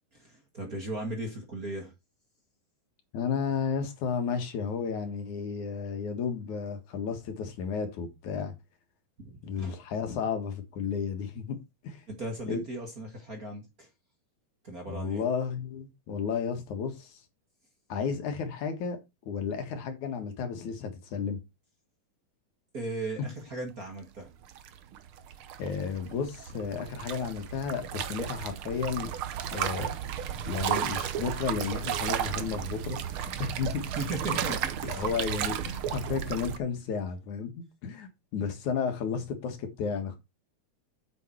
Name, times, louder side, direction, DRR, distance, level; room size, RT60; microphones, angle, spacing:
voice 1, 0.1-1.9 9.2-9.8 12.1-13.9 14.6-15.3 22.7-24.3 33.9-34.6 34.8-35.0, right 2 dB, 30° right, 2.0 m, -37 dB
voice 2, 3.1-8.5 9.4-11.6 11.8-12.0 12.5-12.6 14.9-17.2 17.9-19.0 19.3-21.4 23.2-23.3 25.6-29.1 29.5-29.9 30.5-33.8 34.4-34.6 34.9-37.5 37.8-40.2, left 6 dB, 65° left, 3.0 m, -33 dB
sound 1, 24.3-36.6, right 9 dB, 80° right, 1.2 m, -34 dB
8.6 x 7.1 x 4.6 m
omnidirectional pair, 3.7 m